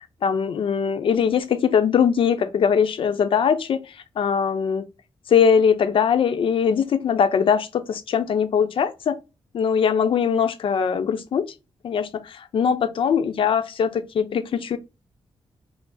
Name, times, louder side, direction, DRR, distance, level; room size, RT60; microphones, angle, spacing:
voice 1, 0.2-3.8 4.2-4.8 5.3-9.2 9.5-11.5 11.8-14.8, left 7 dB, 65° left, 0.6 m, -21 dB
5.7 x 2.0 x 4.0 m
wide cardioid pair, 165°, 10 cm